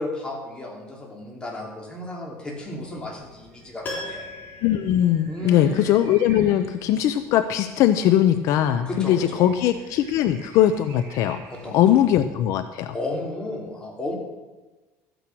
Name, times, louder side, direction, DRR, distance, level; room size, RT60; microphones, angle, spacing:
voice 1, 0.0-4.3 5.3-5.9 8.8-9.6 11.5-11.8 12.9-14.2, left 2 dB, 15° left, -2 dB, 3.3 m, -33 dB
sound 1, 2.5-12.2, right 4 dB, 70° right, 4.1 m, -49 dB
Piano, 3.8-5.9 6.2-6.3, left 2 dB, 30° left, 3.9 m, -37 dB
voice 2, 4.6-11.4 11.7-12.9, left 11 dB, 65° left, 10 dB, 0.6 m, -20 dB
13.5 x 9.1 x 6.2 m, 1.2 s
cardioid pair, 140°, 6 cm